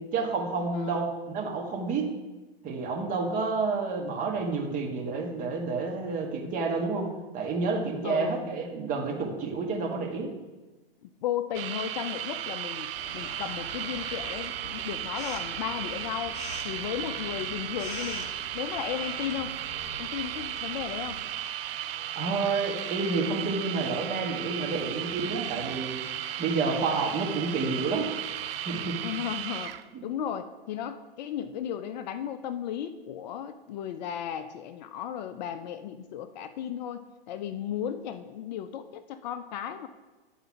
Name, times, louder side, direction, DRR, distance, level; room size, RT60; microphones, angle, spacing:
voice 1, 0.1-1.1 1.3-2.1 2.6-7.1 7.3-10.3 22.2-26.0 26.4-28.1 28.6-29.0 29.9-30.0, right 4 dB, 25° right, 1 dB, 1.4 m, -29 dB
voice 2, 0.7-1.1 8.0-8.5 11.0-16.4 16.6-19.5 20.0-21.2 29.0-39.9, left 10 dB, 45° left, 10 dB, 0.5 m, -35 dB
sound 1, 11.5-29.8, right 11 dB, 70° right, 0.5 m, -35 dB
sound 2, 13.0-21.2, left 2 dB, 25° left, 1.7 m, -44 dB
10.0 x 3.9 x 5.8 m, 1.2 s
hypercardioid pair, 120°, 30 cm